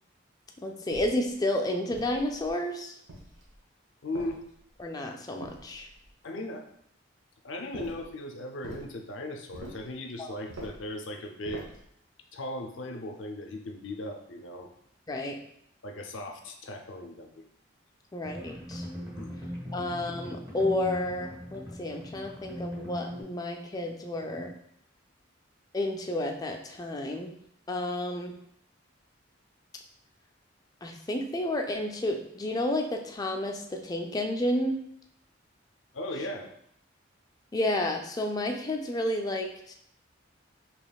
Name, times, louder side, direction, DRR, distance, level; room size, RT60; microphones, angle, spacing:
voice 1, 0.6-2.9 4.8-5.9 10.2-10.3 15.1-15.4 18.1-18.9 19.7-24.5 25.7-27.3 27.7-28.4 30.8-34.8 37.5-39.7, left 1 dB, 20° left, 3 dB, 0.4 m, -31 dB
sound 1, 0.9-1.3 1.9-2.6 3.1-3.6 4.1-4.8 5.4-6.1 7.7-8.1 8.6-8.9 9.5-9.9 10.5-10.9 11.4-11.9, right 1 dB, 85° right, 1.0 m, -45 dB
voice 2, 4.0-4.4 6.2-6.6 7.4-11.7 12.3-14.7 15.8-17.4 19.1-19.3 35.9-36.5, left 1 dB, 70° left, 4 dB, 0.5 m, -37 dB
sound 2, 18.2-23.2, equal, 25° right, 1.2 m, -40 dB
5.0 x 2.9 x 2.3 m, 0.71 s
head